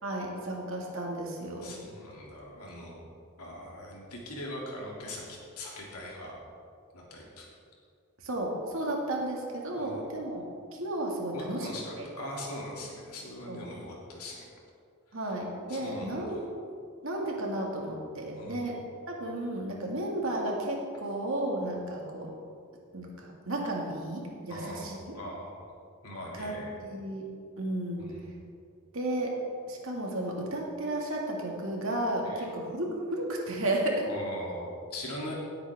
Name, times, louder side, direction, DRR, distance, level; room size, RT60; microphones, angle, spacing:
voice 1, 0.0-1.8 8.2-10.4 10.7-11.7 12.0-12.1 13.5-13.6 15.1-16.4 17.0-18.7 19.1-22.3 22.9-25.2 26.3-26.5 26.8-27.2 27.6-28.1 28.9-29.3 29.7-34.1, right 1 dB, 65° right, -1 dB, 2.1 m, -33 dB
voice 2, 1.6-3.0 3.4-6.4 6.9-7.5 9.7-10.0 11.3-14.5 15.1-15.3 15.7-16.4 18.3-18.8 24.5-25.7 26.0-26.7 28.0-28.3 32.2-32.5 34.1-35.3, left 1 dB, 85° left, -3 dB, 2.6 m, -41 dB
16.5 x 8.2 x 3.6 m, 2.3 s
head